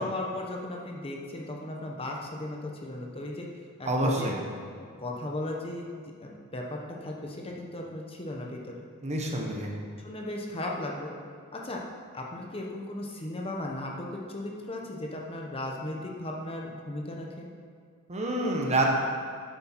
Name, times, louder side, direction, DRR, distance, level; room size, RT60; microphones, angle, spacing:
voice 1, 0.0-3.5 3.8-4.3 4.8-5.9 6.2-8.8 10.0-11.1 11.5-11.8 12.1-17.5, left 1 dB, 25° left, -1 dB, 1.0 m, -36 dB
voice 2, 3.9-4.4 9.0-9.7 18.1-18.8, right 1 dB, 30° right, -1 dB, 1.3 m, -27 dB
9.7 x 7.7 x 4.6 m, 2.1 s
head